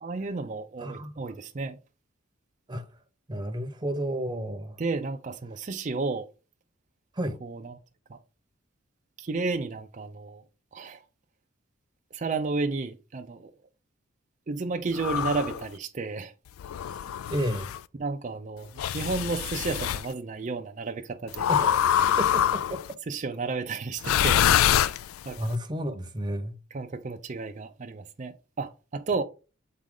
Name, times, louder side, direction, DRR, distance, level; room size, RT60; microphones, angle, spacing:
voice 1, 0.0-1.8 4.8-6.3 7.4-7.7 8.1-8.2 9.2-10.4 10.7-11.0 12.1-13.5 14.5-16.3 18.0-21.8 23.1-24.9 25.2-25.4 26.7-29.2, right 3 dB, 35° right, 0.5 m, -32 dB
voice 2, 0.8-1.2 2.7-2.8 3.3-4.8 7.2-7.4 17.3-17.7 21.5-21.7 22.1-22.8 25.4-26.6, equal, 20° right, 0.9 m, -31 dB
sound 1, 15.0-15.6 16.6-17.8 18.8-20.1 21.4-22.9 24.0-25.4, left 10 dB, 80° left, 0.3 m, -25 dB
7.4 x 4.1 x 3.7 m
head